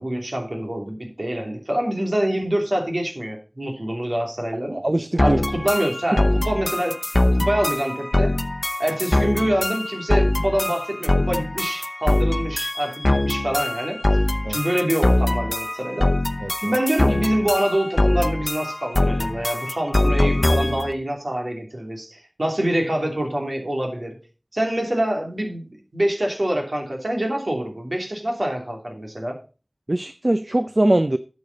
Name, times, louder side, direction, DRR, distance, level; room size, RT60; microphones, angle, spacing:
voice 1, 0.0-4.8 5.2-8.3 8.8-14.0 14.5-16.1 16.6-24.1 24.5-29.4, right 1 dB, 65° right, 2.9 m, -25 dB
voice 2, 4.7-5.4 6.1-6.2 14.4-14.6 16.4-16.7 29.9-31.2, right 1 dB, 50° right, 0.6 m, -21 dB
sound 1, 5.2-20.9, left 1 dB, 45° left, 0.8 m, -22 dB
11.5 x 7.2 x 4.0 m
wide cardioid pair, 45°, 0 cm